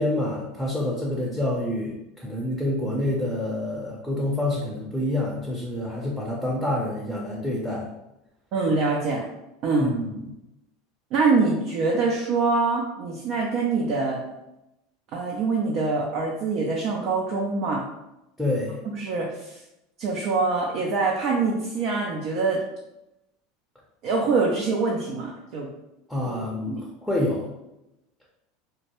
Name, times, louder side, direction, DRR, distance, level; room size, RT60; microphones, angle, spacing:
voice 1, 0.0-7.9 9.8-10.1 18.4-18.8 26.1-27.5, left 1 dB, ahead, -4 dB, 0.6 m, -27 dB
voice 2, 8.5-9.2 9.6-9.9 11.1-14.2 15.1-17.8 18.9-19.6 20.0-22.6 24.0-25.7 26.7-26.8, right 4 dB, 55° right, -2 dB, 0.4 m, -24 dB
2.1 x 2.1 x 2.9 m, 0.90 s
hypercardioid pair, 90°, 0 cm